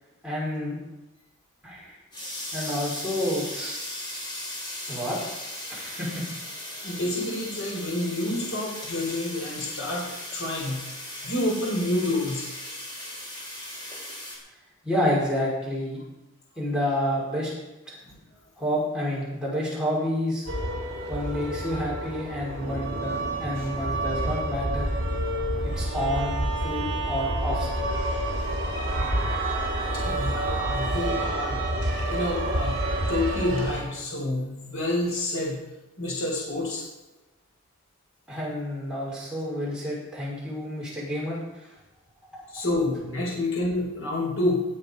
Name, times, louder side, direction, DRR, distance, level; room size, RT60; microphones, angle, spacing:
voice 1, 0.2-0.8 1.6-1.9 2.5-3.8 4.9-5.2 5.7-6.3 14.8-16.0 16.6-17.5 17.9-18.0 18.6-20.5 21.1-24.9 25.8-27.9 38.3-41.7, equal, 5° right, -7 dB, 5.4 m, -29 dB
sound 1, 2.1-14.4, left 1 dB, 20° left, 3.4 m, -37 dB
voice 2, 6.8-10.9 11.2-12.5 18.0-18.1 23.6-23.7 29.9-31.7 32.1-32.8 33.1-35.6 36.0-36.9 42.5-44.6, left 1 dB, 60° left, -4 dB, 4.4 m, -28 dB
sound 2, 20.5-33.8, right 1 dB, 50° right, 3.5 m, -28 dB
18.5 x 7.9 x 5.4 m, 1.0 s
head